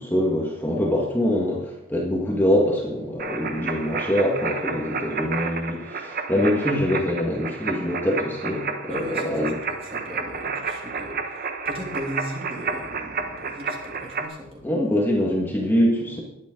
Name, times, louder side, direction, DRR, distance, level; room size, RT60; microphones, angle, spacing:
voice 1, 0.0-9.5 14.6-16.2, left 1 dB, 10° left, -2 dB, 1.8 m, -24 dB
sound 1, 3.2-14.3, right 5 dB, 45° right, 1.1 m, -31 dB
voice 2, 8.9-14.7, equal, 30° right, -1 dB, 2.9 m, -37 dB
20.0 x 8.5 x 3.9 m, 0.88 s
head